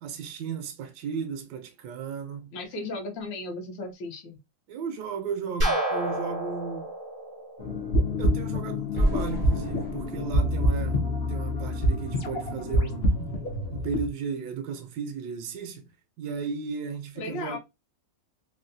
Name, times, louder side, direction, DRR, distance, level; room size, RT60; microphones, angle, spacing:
voice 1, 0.0-2.5 4.7-6.9 8.2-11.0 11.3-13.2 13.7-15.9 16.2-17.6, right 6 dB, 75° right, 1.2 m, -35 dB
voice 2, 2.5-4.4 17.2-17.6, left 2 dB, 75° left, 1.5 m, -35 dB
sound 1, 5.6-8.4, right 1 dB, 45° right, 0.7 m, -29 dB
sound 2, 7.6-14.1, left 1 dB, 50° left, 0.7 m, -26 dB
sound 3, 8.9-11.9, right 1 dB, 10° left, 0.6 m, -31 dB
3.6 x 2.3 x 2.6 m
omnidirectional pair, 2.0 m